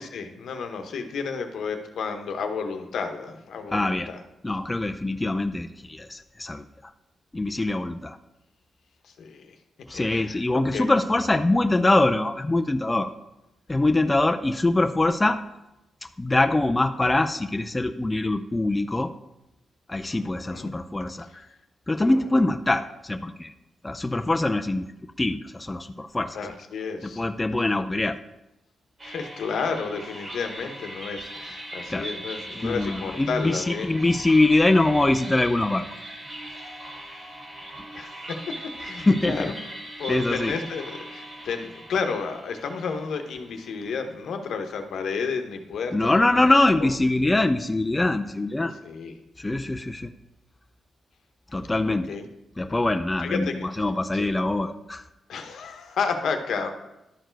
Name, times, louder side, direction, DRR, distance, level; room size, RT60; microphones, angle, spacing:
voice 1, 0.1-4.2 9.0-9.6 9.9-10.8 20.0-20.7 26.3-27.2 29.0-33.9 37.9-38.4 38.8-39.6 40.0-46.5 46.8-46.9 48.8-49.1 51.8-52.2 53.2-53.6 54.1-54.3 55.3-56.7, left 5 dB, 80° left, 5 dB, 0.9 m, -31 dB
voice 2, 3.7-4.1 4.4-6.6 7.3-8.2 9.9-13.1 13.7-15.4 16.2-19.1 19.9-21.3 21.9-23.5 23.8-24.9 25.2-26.4 27.0-28.2 31.9-32.1 32.6-35.9 39.1-39.5 40.1-40.5 45.9-48.7 49.4-50.1 51.5-52.1 52.6-55.0, left 2 dB, 20° left, 7 dB, 0.4 m, -23 dB
sound 1, 29.0-44.2, right 1 dB, 35° right, 2.3 m, -40 dB
11.5 x 4.5 x 4.5 m, 0.92 s
cardioid pair, 70°, 0 cm